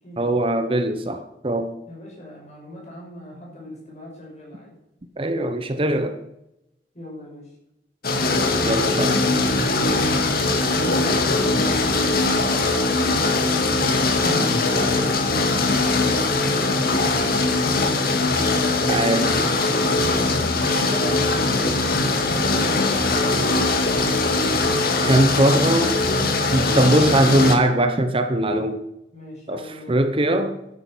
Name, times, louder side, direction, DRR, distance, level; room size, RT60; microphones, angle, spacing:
voice 1, 0.2-1.7 5.2-6.2 8.6-9.2 18.9-19.4 25.0-26.0 26.5-28.8 29.5-30.8, right 1 dB, 30° right, 8 dB, 0.9 m, -21 dB
voice 2, 1.8-4.8 6.9-7.5 10.8-12.8 14.2-18.7 20.1-23.8 29.1-30.0, left 1 dB, 40° left, -2 dB, 6.3 m, -37 dB
sound 1, 8.0-27.5, left 3 dB, 60° left, 2.0 m, -21 dB
11.5 x 9.7 x 6.2 m, 0.88 s
head